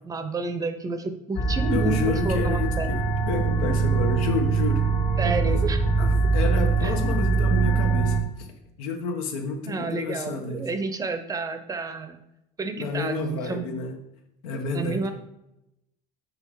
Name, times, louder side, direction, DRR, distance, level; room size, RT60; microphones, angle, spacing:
voice 1, 0.0-2.9 5.2-5.8 6.8-6.9 9.6-12.2 12.6-13.7 14.7-15.1, right 3 dB, 20° right, 8 dB, 0.6 m, -30 dB
sound 1, 1.3-8.2, right 4 dB, 65° left, 1.6 m, -23 dB
voice 2, 1.7-4.9 5.2-5.6 6.0-8.5 8.8-10.7 12.8-14.0 14.4-15.0, left 4 dB, 90° left, 4 dB, 1.2 m, -30 dB
5.7 x 5.1 x 4.7 m, 0.85 s
cardioid pair, 130°, 17 cm